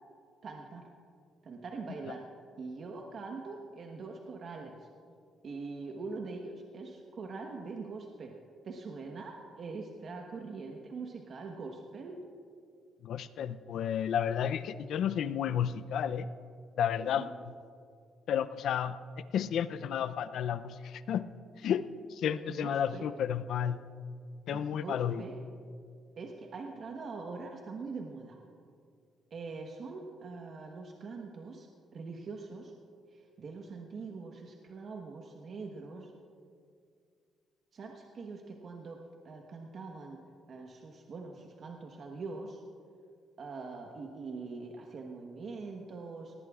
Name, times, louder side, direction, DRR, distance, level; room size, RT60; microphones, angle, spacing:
voice 1, 0.4-0.9 1.4-2.2 2.6-4.9 5.4-8.4 8.6-12.2 16.9-17.3 22.2-23.1 24.5-25.4 26.2-28.4 29.3-32.7 33.1-36.1 37.7-40.2 40.5-42.6 43.4-46.3, right 4 dB, 55° right, 2 dB, 1.2 m, -43 dB
voice 2, 13.0-16.3 16.8-17.3 18.3-19.0 19.3-21.3 21.6-23.8 24.5-25.2, left 9 dB, 75° left, 14 dB, 0.5 m, -32 dB
18.5 x 18.0 x 2.4 m, 2.3 s
cardioid pair, 90°, 0 cm